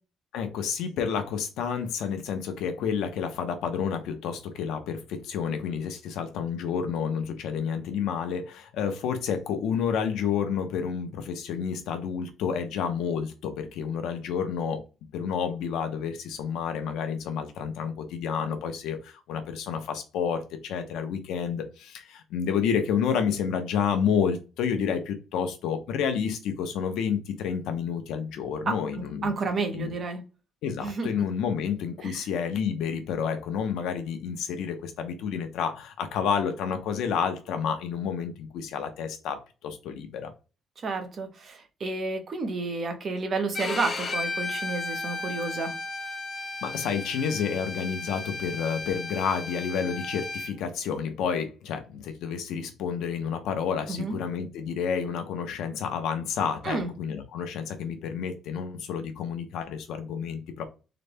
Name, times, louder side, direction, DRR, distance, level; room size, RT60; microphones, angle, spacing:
voice 1, 0.3-14.8 15.1-29.3 29.7-29.9 30.6-40.3 46.6-60.6, left 7 dB, 90° left, 7 dB, 0.7 m, -30 dB
voice 2, 29.2-30.2 30.8-31.1 32.0-32.2 40.8-45.7 53.9-54.2 56.6-56.9, right 3 dB, 35° right, 6 dB, 0.7 m, -30 dB
Bowed string instrument, 43.5-50.5, left 3 dB, 25° left, 0.6 m, -34 dB
3.9 x 2.2 x 3.4 m, 0.31 s
cardioid pair, 180°, 0 cm